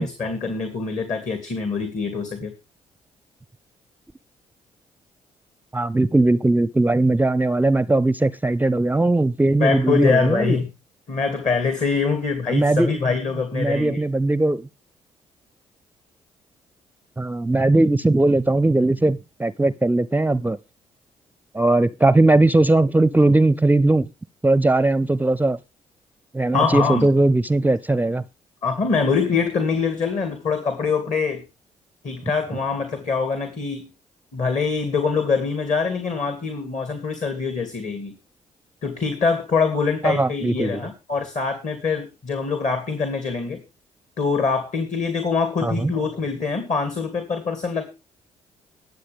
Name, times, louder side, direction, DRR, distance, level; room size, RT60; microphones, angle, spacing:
voice 1, 0.0-2.5 9.6-10.7 11.1-14.0 26.5-27.1 28.6-31.4 32.0-33.9 34.3-38.1 38.8-43.6 44.2-47.9, left 5 dB, 50° left, 2.3 m, -24 dB
voice 2, 5.7-10.6 12.5-12.9 13.5-14.7 17.2-20.6 21.5-24.1 24.4-25.6 26.3-28.2 40.0-40.8 45.6-45.9, right 2 dB, 10° right, 0.5 m, -19 dB
21.0 x 7.7 x 3.5 m
hypercardioid pair, 40°, 16 cm